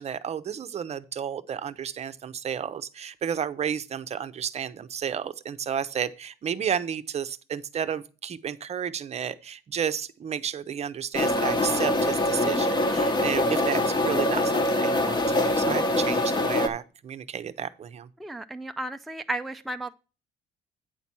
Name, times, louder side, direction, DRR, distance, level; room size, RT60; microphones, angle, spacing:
voice 1, 0.0-18.1, right 8 dB, 40° right, 12 dB, 0.6 m, -32 dB
sound 1, 11.1-16.7, left 1 dB, 25° left, 1.0 m, -24 dB
voice 2, 18.2-19.9, right 1 dB, ahead, 6 dB, 0.4 m, -33 dB
9.0 x 4.2 x 6.0 m, 0.33 s
cardioid pair, 110°, 17 cm